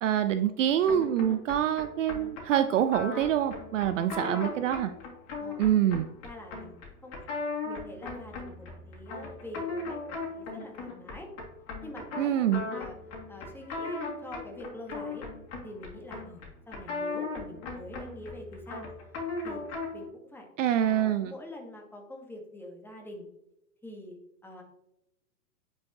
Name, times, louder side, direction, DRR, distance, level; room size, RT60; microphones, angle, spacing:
voice 1, 0.0-4.9 5.6-6.1 12.2-12.6 20.6-21.3, right 10 dB, 55° right, 11 dB, 0.5 m, -26 dB
sound 1, 0.9-20.1, left 3 dB, 30° left, 2.3 m, -38 dB
voice 2, 4.1-4.6 5.4-5.6 6.2-7.2 7.6-11.3 11.8-13.0 13.3-15.3 15.6-18.9 19.4-19.6 19.9-20.5 20.8-23.3 23.8-24.2 24.4-24.6, left 1 dB, 5° left, 1 dB, 1.3 m, -45 dB
9.3 x 4.6 x 2.9 m, 0.85 s
hypercardioid pair, 110°, 46 cm